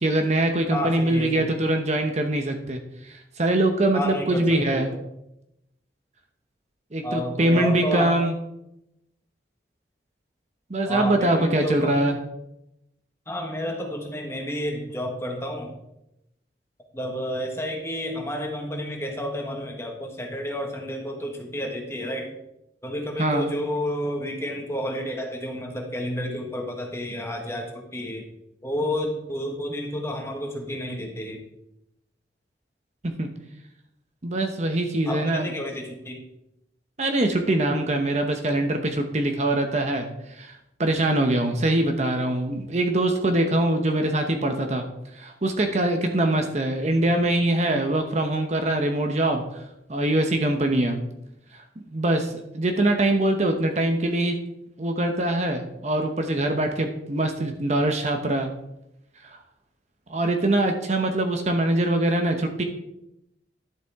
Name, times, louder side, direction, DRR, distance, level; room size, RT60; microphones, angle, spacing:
voice 1, 0.0-4.9 6.9-8.3 10.7-12.2 23.2-23.5 33.0-33.3 34.2-35.5 37.0-44.8 45.1-49.4 49.9-51.0 51.9-54.4 54.8-58.5 60.1-62.6, right 1 dB, 40° right, 5 dB, 0.8 m, -23 dB
voice 2, 0.7-1.6 3.9-5.0 7.0-8.2 10.9-12.2 13.3-15.7 16.9-22.3 22.8-28.3 28.6-31.4 35.1-36.2, equal, 15° left, 2 dB, 1.4 m, -30 dB
11.0 x 7.5 x 3.6 m, 0.85 s
head